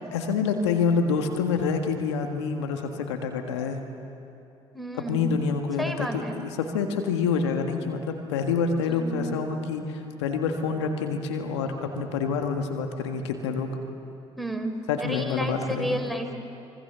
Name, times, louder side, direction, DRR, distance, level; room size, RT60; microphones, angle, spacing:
voice 1, 0.1-3.8 5.1-6.1 6.4-13.7 14.9-16.0, left 5 dB, 85° left, 4 dB, 1.7 m, -27 dB
voice 2, 4.7-5.3 5.8-6.3 8.9-9.3 14.4-16.3, right 1 dB, ahead, 6 dB, 3.9 m, -32 dB
25.0 x 25.0 x 6.9 m, 2.9 s
hypercardioid pair, 55°, 14 cm